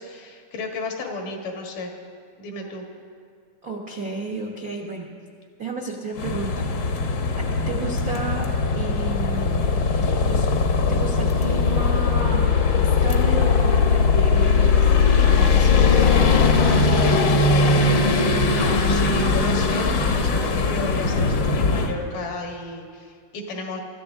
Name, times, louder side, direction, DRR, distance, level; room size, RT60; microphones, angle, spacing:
voice 1, 0.0-1.9 2.4-2.8 18.4-23.8, left 2 dB, 85° left, 1 dB, 3.3 m, -33 dB
voice 2, 3.6-5.1 5.6-6.7 7.4-8.5 8.8-9.6 10.2-10.5 10.9-16.4 16.7-17.3, right 3 dB, 70° right, 0 dB, 0.8 m, -32 dB
sound 1, 6.2-21.9, left 4 dB, 65° left, 1.2 m, -19 dB
24.0 x 13.5 x 3.6 m, 2.1 s
omnidirectional pair, 3.5 m